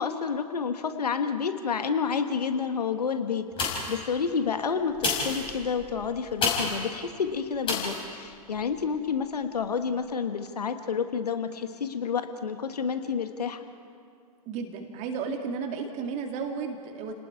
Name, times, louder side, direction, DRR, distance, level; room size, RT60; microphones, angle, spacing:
voice 1, 0.0-13.7, left 6 dB, 75° left, 8 dB, 1.3 m, -29 dB
sound 1, 3.5-4.1 4.9-6.9 7.6-8.0 8.6-8.7, left 4 dB, 25° left, 5.5 m, -29 dB
voice 2, 14.5-17.1, right 5 dB, 35° right, 3 dB, 2.0 m, -33 dB
30.0 x 19.5 x 4.8 m, 2.2 s
figure-of-eight pair, 110°, 20 cm